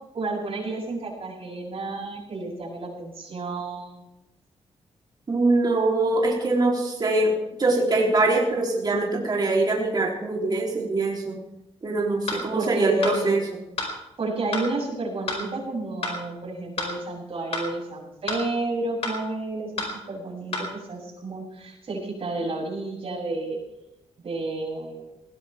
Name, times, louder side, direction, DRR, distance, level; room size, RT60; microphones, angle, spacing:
voice 1, 0.1-4.1 12.5-13.4 14.2-23.6 24.2-25.0, right 2 dB, 55° right, -4 dB, 7.8 m, -31 dB
voice 2, 5.3-11.4 11.8-13.4, right 2 dB, 35° right, -2 dB, 3.6 m, -23 dB
sound 1, 12.3-12.4 13.0-13.2 13.8-13.9 14.5-14.7 15.3-15.4 16.0-16.2 16.8-16.9 17.5-17.7 18.3-18.4 19.0-19.2 19.8-19.9 20.5-20.7, left 2 dB, 60° left, 4.9 m, -29 dB
20.5 x 17.0 x 3.6 m, 0.90 s
cardioid pair, 100°, 11 cm